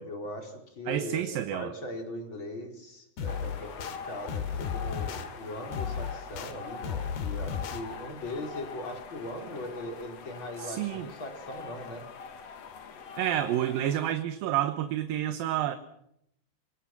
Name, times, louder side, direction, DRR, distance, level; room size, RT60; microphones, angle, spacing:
voice 1, 0.0-12.1, left 1 dB, 30° left, 3 dB, 5.0 m, -40 dB
voice 2, 0.9-1.7 10.6-11.1 13.2-15.8, right 12 dB, 70° right, 9 dB, 2.7 m, -29 dB
sound 1, 3.2-4.0 4.3-5.3 5.7-6.5 6.8-7.8, left 7 dB, 85° left, 3.9 m, -34 dB
sound 2, 3.3-14.1, left 6 dB, 50° left, 2.5 m, -43 dB
26.5 x 25.5 x 6.1 m, 0.75 s
omnidirectional pair, 4.4 m